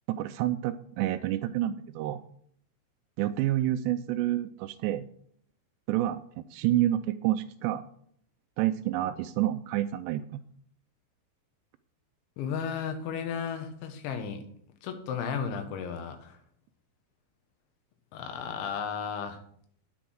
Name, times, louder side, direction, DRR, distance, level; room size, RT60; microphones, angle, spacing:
voice 1, 0.1-2.2 3.2-5.1 5.9-7.8 8.6-10.4, right 13 dB, 85° right, 6 dB, 2.6 m, -28 dB
voice 2, 12.4-14.4 14.8-16.4 18.1-19.4, left 6 dB, 90° left, 7 dB, 3.7 m, -34 dB
10.5 x 7.8 x 6.2 m, 0.63 s
omnidirectional pair, 5.1 m